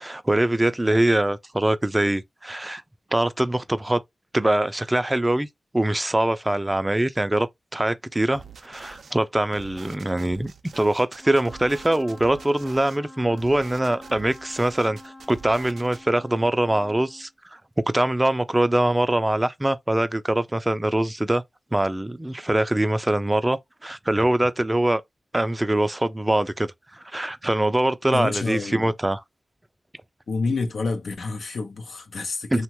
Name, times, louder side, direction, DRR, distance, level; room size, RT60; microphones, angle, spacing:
voice 1, 0.0-2.8 3.1-4.0 4.3-5.5 5.7-7.5 7.7-17.6 17.9-21.4 21.7-25.0 25.3-29.2 32.5-32.6, right 1 dB, 20° right, 0.4 m, -23 dB
sound 1, 8.3-9.1 9.5-13.0 13.4-16.0, right 6 dB, 90° right, 0.4 m, -45 dB
Wind instrument woodwind instrument, 11.2-17.3, left 1 dB, 15° left, 0.7 m, -46 dB
voice 2, 28.1-28.9 30.3-32.6, left 3 dB, 80° left, 0.6 m, -28 dB
2.8 x 2.2 x 2.9 m
cardioid pair, 45°, 0 cm